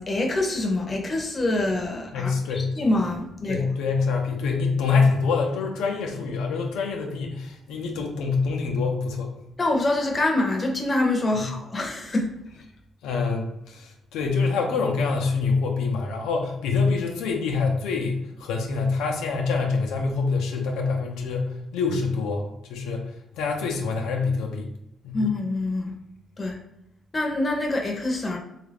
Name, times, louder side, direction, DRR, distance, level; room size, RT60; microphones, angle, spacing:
voice 1, 0.0-3.6 9.6-12.3 25.1-25.9 26.4-26.6 27.1-28.4, left 2 dB, 30° left, 1 dB, 0.7 m, -25 dB
voice 2, 2.1-2.7 3.5-9.3 11.3-11.4 13.0-21.5 21.7-23.0 23.3-24.7 25.0-25.2, left 4 dB, 90° left, 1 dB, 0.5 m, -25 dB
3.3 x 2.4 x 3.4 m, 0.84 s
cardioid pair, 90°, 0 cm